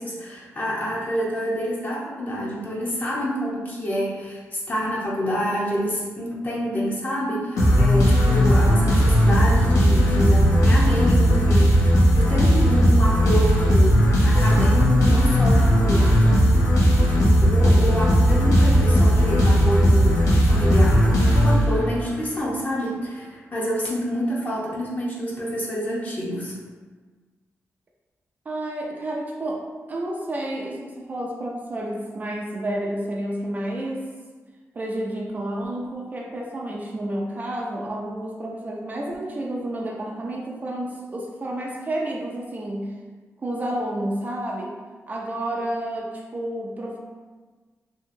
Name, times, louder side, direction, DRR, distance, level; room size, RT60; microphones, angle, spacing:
voice 1, 0.0-16.1 16.9-26.6, equal, 30° left, -4 dB, 0.7 m, -28 dB
sound 1, 7.6-22.1, equal, 80° left, 0.6 m, -17 dB
voice 2, 28.5-34.1 34.7-42.9 43.4-44.7 45.1-47.0, right 1 dB, 35° right, -1 dB, 0.3 m, -30 dB
2.8 x 2.7 x 2.5 m, 1.4 s
wide cardioid pair, 135°, 5 cm